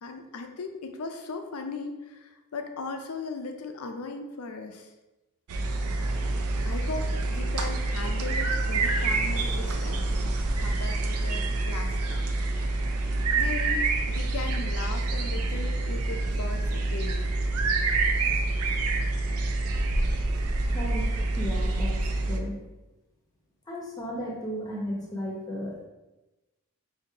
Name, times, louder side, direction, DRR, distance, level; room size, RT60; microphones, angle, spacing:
voice 1, 0.0-4.9 6.6-10.1 10.6-12.3 12.5-18.6, left 3 dB, 70° left, 5 dB, 0.5 m, -38 dB
sound 1, 5.5-22.4, right 2 dB, 75° right, 0.5 m, -27 dB
voice 2, 20.6-22.0 22.3-22.6 23.7-25.8, equal, 15° left, -3 dB, 0.8 m, -34 dB
5.2 x 2.7 x 2.8 m, 1.1 s
head